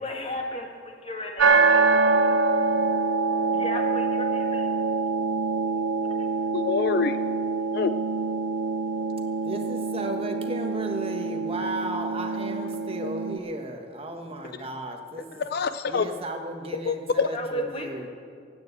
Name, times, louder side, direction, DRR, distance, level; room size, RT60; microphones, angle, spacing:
voice 1, 0.0-2.1 3.5-4.7 17.3-17.9, equal, 35° left, 2 dB, 2.0 m, -34 dB
sound 1, 1.4-13.4, right 4 dB, 80° right, 0.8 m, -25 dB
voice 2, 6.5-7.2 7.7-7.9 13.0-13.1 15.3-16.1 16.8-17.3, left 5 dB, 55° left, 11 dB, 0.4 m, -25 dB
voice 3, 9.4-15.3 15.9-18.1, right 1 dB, 30° right, 4 dB, 1.3 m, -34 dB
17.5 x 9.2 x 8.1 m, 2.2 s
head